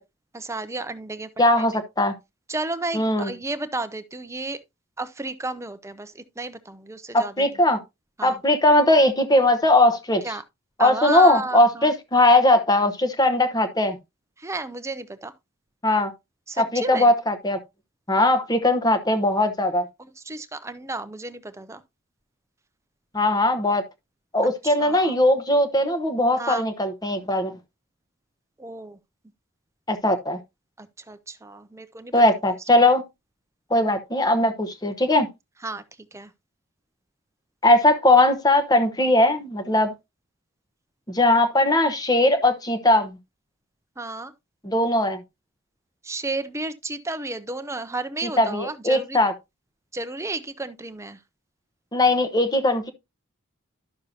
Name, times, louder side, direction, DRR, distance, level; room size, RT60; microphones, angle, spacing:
voice 1, 0.3-1.3 1.6-1.8 2.5-4.6 5.0-7.6 8.2-8.4 10.2-10.4 10.8-11.9 14.4-15.3 16.5-17.1 20.0-21.8 24.6-25.2 26.4-26.7 28.6-29.0 30.8-32.1 32.5-32.6 35.6-35.8 36.1-36.3 44.0-44.3 46.0-49.2 49.9-51.2, right 2 dB, 15° right, 0.6 m, -32 dB
voice 2, 1.4-2.1 2.9-3.3 7.1-7.8 8.2-10.2 10.8-14.0 15.8-16.1 16.6-17.6 18.1-19.9 23.1-23.8 24.3-27.5 29.9-30.4 32.1-33.0 33.7-35.3 37.6-39.9 41.1-43.2 44.6-45.2 48.4-49.3 51.9-52.9, left 1 dB, 20° left, 1.0 m, -19 dB
11.5 x 6.6 x 2.8 m
head